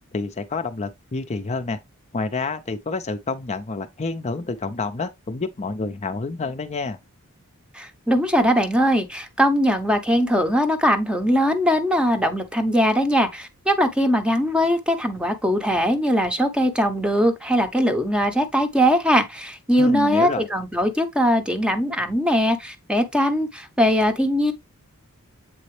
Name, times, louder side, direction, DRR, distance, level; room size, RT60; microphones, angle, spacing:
voice 1, 0.1-1.8 2.1-7.0 19.8-20.5, left 3 dB, 30° left, 0.5 m, -28 dB
voice 2, 7.7-24.5, equal, 5° right, 0.8 m, -21 dB
7.7 x 4.0 x 3.2 m
head